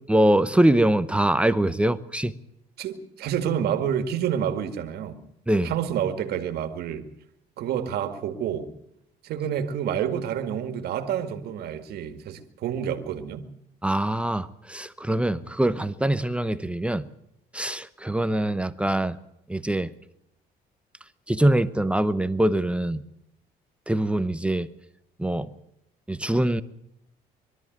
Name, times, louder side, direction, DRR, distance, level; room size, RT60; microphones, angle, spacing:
voice 1, 0.1-2.3 5.5-5.7 13.8-17.0 17.5-19.2 19.5-19.9 21.3-23.0 23.9-24.7 25.2-25.5 26.1-26.6, right 1 dB, 5° right, 0.8 m, -23 dB
voice 2, 2.8-5.2 5.6-7.1 7.6-8.7 9.2-13.4, right 9 dB, 70° right, 2.1 m, -28 dB
22.0 x 13.0 x 9.3 m
cardioid pair, 110°, 17 cm